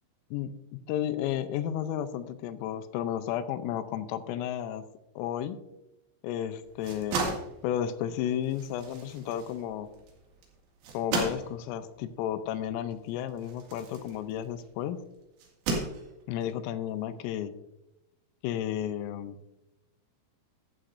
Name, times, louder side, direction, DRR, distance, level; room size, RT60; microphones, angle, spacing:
voice 1, 0.3-4.8 5.2-5.6 6.2-7.2 7.6-9.9 10.9-15.0 16.3-17.5 18.4-19.4, left 10 dB, 85° left, 11 dB, 3.2 m, -33 dB
sound 1, 6.6-14.7 15.4-16.4, right 3 dB, 75° right, 4.6 m, -36 dB
12.5 x 12.0 x 2.6 m, 0.91 s
omnidirectional pair, 5.9 m